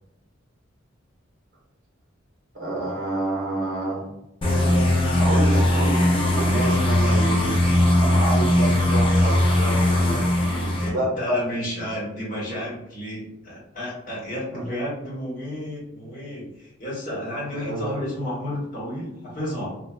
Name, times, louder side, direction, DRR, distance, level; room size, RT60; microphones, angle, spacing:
voice 1, 2.5-4.1 5.2-7.6 8.0-10.2 10.6-11.4 14.5-14.6 17.6-18.1, right 2 dB, 50° right, -3 dB, 0.9 m, -28 dB
sound 1, 4.4-10.9, left 1 dB, 25° left, 0.5 m, -19 dB
voice 2, 9.8-19.8, equal, 45° left, -6 dB, 1.1 m, -32 dB
3.0 x 2.2 x 2.3 m, 0.88 s
head